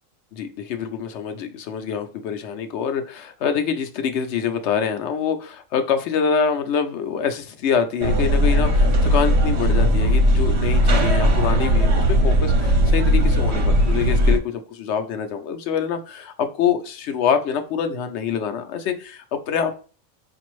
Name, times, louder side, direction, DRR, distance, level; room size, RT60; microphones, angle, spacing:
voice 1, 0.3-19.8, left 7 dB, 70° left, 7 dB, 0.8 m, -25 dB
sound 1, 8.0-14.4, equal, 60° right, 1.0 m, -18 dB
4.9 x 2.6 x 3.0 m, 0.37 s
omnidirectional pair, 1.3 m